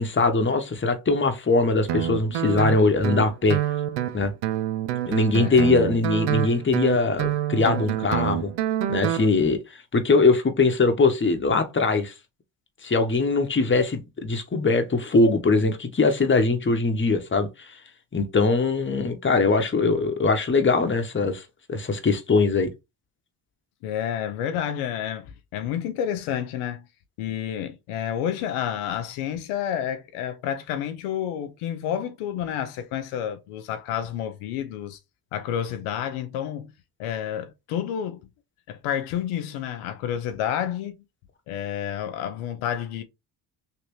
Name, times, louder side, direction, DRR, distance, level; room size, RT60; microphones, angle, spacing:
voice 1, 0.0-3.6 4.1-4.3 5.1-8.5 8.9-9.6 9.9-12.1 12.8-17.8 18.1-21.4 21.7-22.7, left 3 dB, 25° left, 1.0 m, -21 dB
Guitar, 1.9-9.3, right 11 dB, 75° right, 0.6 m, -27 dB
voice 2, 5.4-5.8 23.8-26.9 27.2-35.0 35.3-36.7 37.0-38.3 38.7-41.0 41.5-43.0, left 9 dB, 85° left, 0.6 m, -30 dB
3.3 x 2.9 x 3.0 m
supercardioid pair, 55°, 49 cm